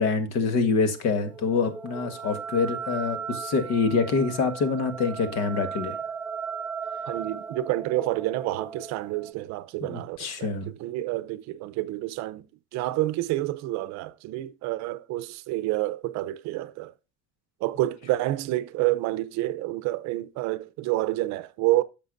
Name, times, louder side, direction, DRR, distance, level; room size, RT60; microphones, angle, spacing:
voice 1, 0.0-6.0 9.8-10.7, left 4 dB, 55° left, 1.7 m, -26 dB
sound 1, 0.7-9.3, right 6 dB, 5° right, 0.9 m, -37 dB
voice 2, 7.1-12.5 12.7-16.9 17.6-21.8, right 16 dB, 60° right, 0.7 m, -28 dB
11.0 x 6.9 x 2.6 m
cardioid pair, 155°, 32 cm